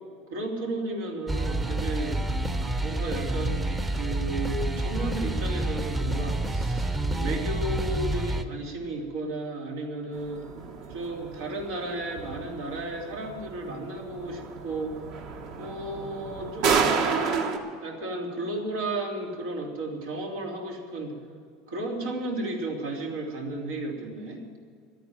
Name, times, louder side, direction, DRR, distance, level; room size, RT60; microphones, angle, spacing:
voice 1, 0.3-2.2 2.8-10.4 10.9-15.1 15.6-21.2 21.7-24.4, right 2 dB, 85° right, 0 dB, 3.2 m, -33 dB
sound 1, 1.3-8.4, right 2 dB, 15° right, 0.8 m, -28 dB
sound 2, 10.1-17.6, right 5 dB, 60° right, 1.7 m, -31 dB
13.0 x 9.3 x 9.1 m, 2.2 s
supercardioid pair, 130°, 0 cm